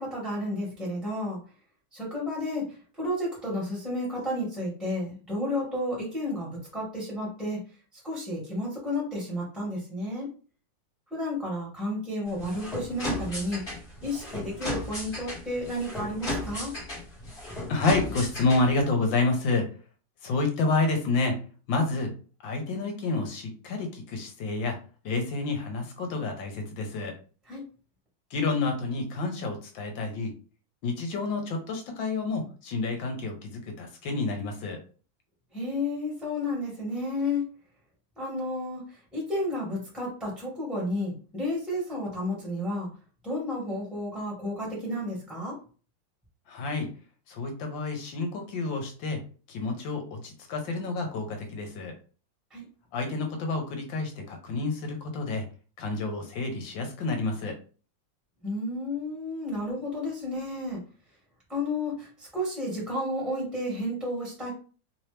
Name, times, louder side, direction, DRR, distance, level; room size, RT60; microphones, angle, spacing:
voice 1, 0.0-1.4 1.9-2.6 3.0-7.6 8.0-10.3 11.1-13.6 14.0-16.7 27.5-27.6 35.5-37.4 38.2-38.8 39.1-42.9 43.2-45.5 52.5-52.7 58.4-60.8 61.5-64.5, left 1 dB, ahead, -6 dB, 1.6 m, -32 dB
sound 1, 12.3-18.8, left 2 dB, 30° left, 1.8 m, -35 dB
voice 2, 17.7-19.7 20.2-21.4 21.7-22.1 22.4-24.8 25.0-27.1 28.3-30.3 30.8-34.8 46.5-46.9 47.3-49.2 49.5-51.9 52.9-55.4 55.8-57.6, left 3 dB, 75° left, 3 dB, 1.7 m, -29 dB
3.6 x 2.9 x 3.3 m, 0.38 s
omnidirectional pair, 2.1 m